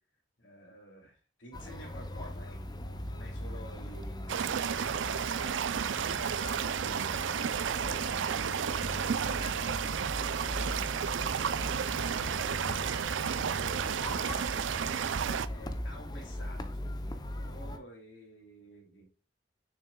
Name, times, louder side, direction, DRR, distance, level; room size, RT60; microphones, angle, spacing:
voice 1, 0.4-15.2 15.4-19.1, right 1 dB, 85° left, 1 dB, 2.7 m, -51 dB
sound 1, 1.5-17.8, left 1 dB, 20° left, 0.6 m, -40 dB
sound 2, 4.3-15.5, right 7 dB, 85° right, 0.4 m, -32 dB
6.7 x 6.4 x 2.3 m, 0.37 s
head